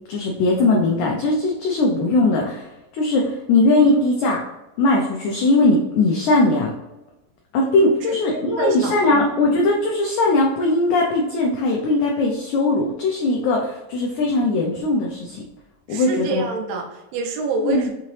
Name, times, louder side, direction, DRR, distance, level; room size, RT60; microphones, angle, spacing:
voice 1, 0.1-4.4 4.8-6.7 7.5-15.4 15.9-16.4 17.6-17.8, left 2 dB, 90° left, -1 dB, 1.6 m, -19 dB
voice 2, 8.0-9.2 15.9-17.9, right 4 dB, 80° right, 3 dB, 2.5 m, -27 dB
6.0 x 2.8 x 3.1 m, 1.0 s
omnidirectional pair, 4.2 m